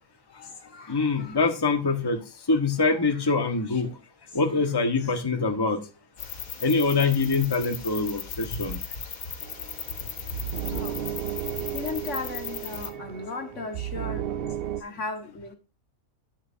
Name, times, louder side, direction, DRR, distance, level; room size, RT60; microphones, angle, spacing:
voice 1, 0.4-1.4 3.1-3.2 10.7-11.0 11.7-14.2 14.8-15.5, left 4 dB, 60° left, 1.9 m, -36 dB
voice 2, 0.9-2.2 2.5-3.9 4.3-5.8 6.6-8.8, left 3 dB, 20° left, 1.3 m, -24 dB
sound 1, 6.2-12.9, left 6 dB, 80° left, 1.7 m, -37 dB
sound 2, 9.4-14.8, right 11 dB, 60° right, 0.7 m, -34 dB
12.0 x 7.8 x 2.7 m
omnidirectional pair, 1.4 m